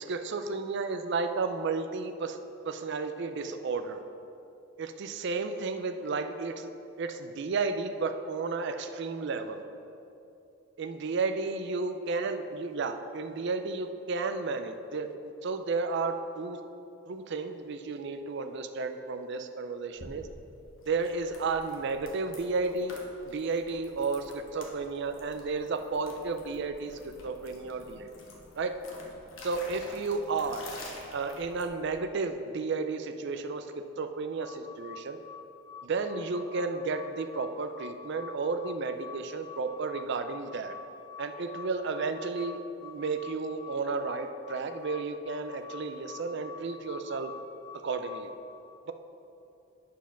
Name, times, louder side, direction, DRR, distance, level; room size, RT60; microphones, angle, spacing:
voice 1, 0.0-2.4 2.6-4.0 4.8-6.7 7.0-9.6 10.8-16.6 17.1-20.3 20.9-23.0 23.3-28.1 28.6-28.8 29.4-30.7 31.1-35.2 35.8-40.8 41.2-47.3 47.8-48.3, right 4 dB, 60° right, 8 dB, 0.4 m, -33 dB
sound 1, 20.0-32.0, left 1 dB, 75° left, 1.2 m, -49 dB
sound 2, 34.3-48.4, left 6 dB, 25° left, 0.9 m, -47 dB
9.2 x 4.6 x 5.9 m, 2.7 s
head